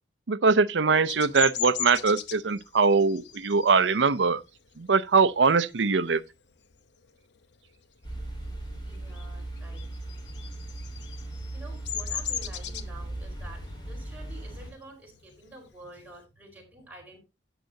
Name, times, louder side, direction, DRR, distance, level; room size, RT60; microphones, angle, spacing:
voice 1, 0.3-4.4 4.8-6.2, right 4 dB, 80° right, 0.6 m, -22 dB
Bird vocalization bird call bird song, 1.1-6.3 6.7-7.0 7.3-8.6 8.8-16.2, left 9 dB, 70° left, 0.9 m, -37 dB
sound 1, 8.0-14.7, right 1 dB, 25° left, 4.3 m, -38 dB
voice 2, 8.9-17.2, right 2 dB, 10° right, 4.6 m, -49 dB
13.0 x 9.1 x 2.8 m
head